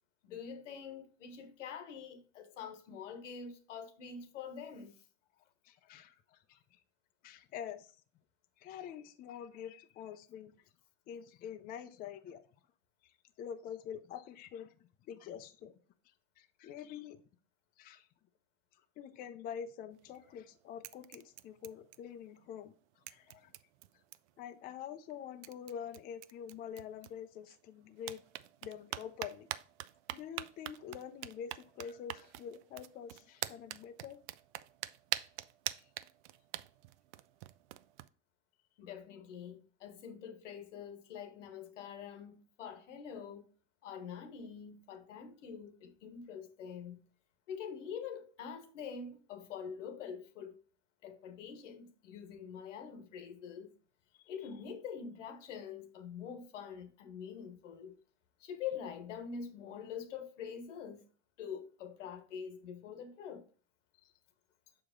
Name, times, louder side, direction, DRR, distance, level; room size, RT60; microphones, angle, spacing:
voice 1, 0.2-4.9 38.8-43.4 43.8-47.0 47.5-50.6 51.0-53.7 54.3-58.0 58.4-61.1 61.4-63.4, left 7 dB, 85° left, 1.3 m, -45 dB
voice 2, 5.6-6.8 7.2-8.0 8.6-10.5 11.1-12.4 13.0-14.8 15.0-15.7 16.4-17.2 17.8-18.1 19.0-22.7 23.1-23.5 24.4-28.2 28.6-29.5 30.1-34.2 35.7-35.9 54.1-54.3 64.0-64.1, left 8 dB, 25° left, 0.4 m, -46 dB
sound 1, 19.9-20.5 20.8-22.4 22.6-22.7 23.1-24.4 25.1-25.2 25.4-27.6 28.0-38.1, right 15 dB, 70° right, 0.5 m, -45 dB
6.5 x 4.8 x 3.7 m
supercardioid pair, 135°, 36 cm